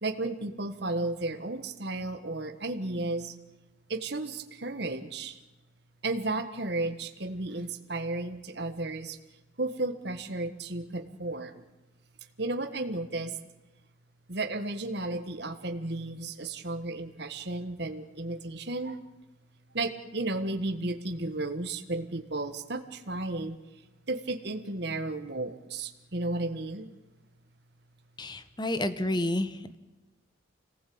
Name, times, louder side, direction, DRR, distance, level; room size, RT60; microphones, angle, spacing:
voice 1, 0.0-3.3 3.9-5.4 6.0-9.2 9.6-11.6 12.4-13.3 14.3-19.0 19.7-23.5 24.1-26.9, right 2 dB, 55° right, 7 dB, 1.6 m, -33 dB
voice 2, 28.2-29.8, left 1 dB, 20° left, 12 dB, 1.2 m, -30 dB
26.0 x 19.0 x 8.7 m, 1.1 s
head